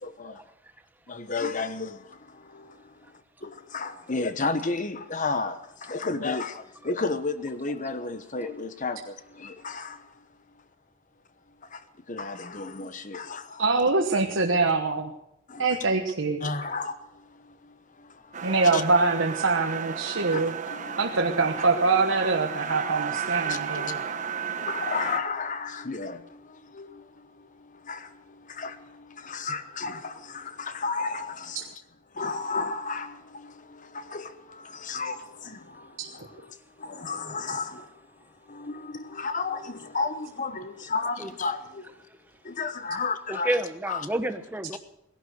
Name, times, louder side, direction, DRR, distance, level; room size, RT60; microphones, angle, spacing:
voice 1, 0.0-0.4 1.1-3.0 3.4-10.1 11.7-11.8 12.1-13.6 15.5-15.8 16.4-18.8 20.3-20.4 20.7-21.0 23.4-23.9 24.5-31.6 32.1-36.5 36.8-38.0 38.4-42.0 42.4-43.5 43.9-44.0, left 4 dB, 40° left, 1.1 m, -33 dB
voice 2, 13.6-15.1 15.6-16.5 18.4-20.5 21.0-24.0 31.5-31.6 36.0-36.1, right 3 dB, 70° right, 1.2 m, -24 dB
sound 1, 18.3-25.2, right 7 dB, 40° right, 1.1 m, -33 dB
voice 3, 43.3-44.8, right 1 dB, 10° right, 0.9 m, -30 dB
18.0 x 11.0 x 6.5 m
head